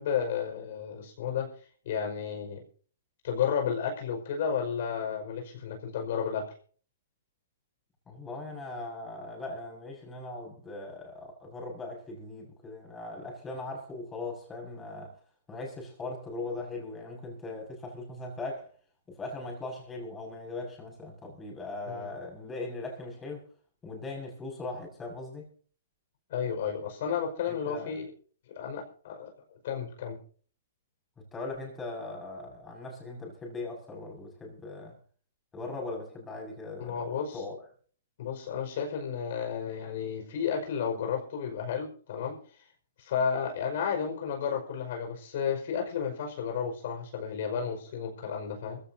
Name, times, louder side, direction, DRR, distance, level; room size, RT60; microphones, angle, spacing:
voice 1, 0.0-1.5 1.9-2.6 3.2-6.5 21.9-22.1 26.3-28.1 28.5-29.3 29.6-30.2 36.8-37.4 38.2-42.4 43.0-48.8, left 7 dB, 60° left, 5.5 m, -32 dB
voice 2, 8.1-15.2 15.5-18.7 19.1-23.4 23.8-25.5 27.5-27.9 31.2-35.0 35.5-37.1 37.3-37.7, left 2 dB, 15° left, 6.3 m, -39 dB
22.5 x 15.5 x 2.8 m
hypercardioid pair, 145°, 0 cm